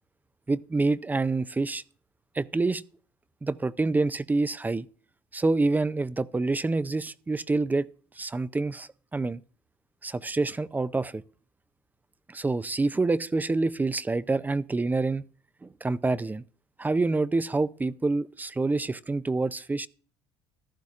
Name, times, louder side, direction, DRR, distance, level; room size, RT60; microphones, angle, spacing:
voice 1, 0.5-1.8 2.4-2.8 3.4-4.9 5.3-7.9 8.2-9.4 10.0-11.2 12.3-15.2 15.6-16.4 16.8-19.9, right 3 dB, 15° right, 0.5 m, -27 dB
15.0 x 11.5 x 2.4 m
supercardioid pair, 95°, 11 cm